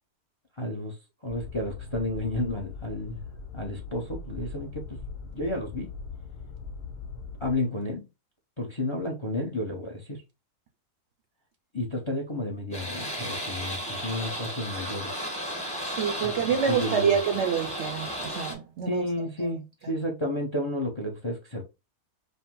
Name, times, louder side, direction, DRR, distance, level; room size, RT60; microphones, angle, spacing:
voice 1, 0.6-1.0 1.2-3.2 3.5-5.0 5.3-5.9 7.4-8.1 8.6-10.2 11.7-15.1 16.2-16.3 16.7-17.2 18.9-21.6, left 1 dB, 30° left, 0.6 m, -31 dB
sound 1, 1.3-7.5, left 4 dB, 85° left, 1.3 m, -40 dB
sound 2, 12.7-18.5, equal, 5° left, 0.9 m, -34 dB
voice 2, 15.8-19.0 19.8-19.9, right 7 dB, 65° right, 0.7 m, -27 dB
5.2 x 2.1 x 3.6 m
omnidirectional pair, 1.6 m